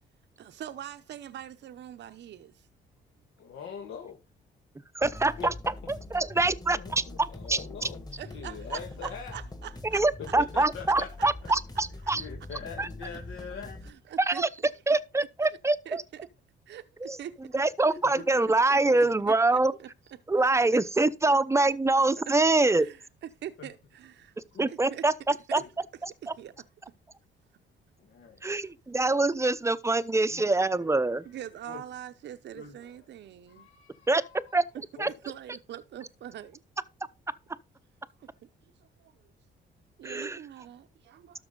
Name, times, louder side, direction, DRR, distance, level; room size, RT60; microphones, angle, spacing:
voice 1, 0.4-2.7 8.2-10.4 10.9-12.5 13.0-13.5 13.8-15.0 15.4-15.6 15.8-16.3 16.7-21.4 22.5-24.4 24.7-25.1 25.3-26.7 28.5-28.7 31.2-33.7 34.9-36.6 38.2-38.5 38.8-39.3 40.0-41.4, right 11 dB, 65° right, 0.7 m, -45 dB
voice 2, 3.4-4.2 5.4-5.5 6.7-9.4 10.4-11.3 12.1-13.8 18.0-18.2 18.8-19.2 20.6-20.7 23.6-23.7 24.5-24.7 25.6-25.7 28.0-28.5 30.3-30.4 31.7-31.8 32.5-32.8 33.5-34.3 35.0-35.1, left 6 dB, 75° left, 1.9 m, -43 dB
voice 3, 4.9-7.9 9.9-12.3 12.8-12.9 14.2-14.5 14.9-16.0 17.0-17.2 17.5-19.8 20.3-22.9 24.6-25.6 26.0-26.3 28.4-31.2 34.1-34.2 34.5-34.6 35.0-35.1 40.0-40.4, right 2 dB, 15° right, 0.7 m, -25 dB
sound 1, 5.0-13.9, left 2 dB, 20° left, 1.9 m, -43 dB
12.5 x 6.0 x 3.9 m
cardioid pair, 90°, 20 cm